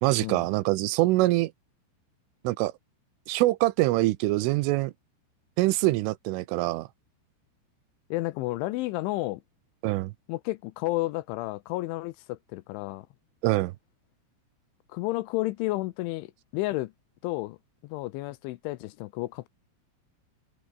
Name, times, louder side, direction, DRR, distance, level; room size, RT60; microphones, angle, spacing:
voice 1, 0.0-1.5 2.4-2.7 3.3-4.9 5.6-6.9 9.8-10.1 13.4-13.7, right 19 dB, 85° right, 3.3 m, -24 dB
voice 2, 8.1-9.4 10.3-13.1 14.9-16.9 17.2-17.6 17.8-19.5, left 19 dB, 80° left, 2.9 m, -31 dB
omnidirectional pair, 5.9 m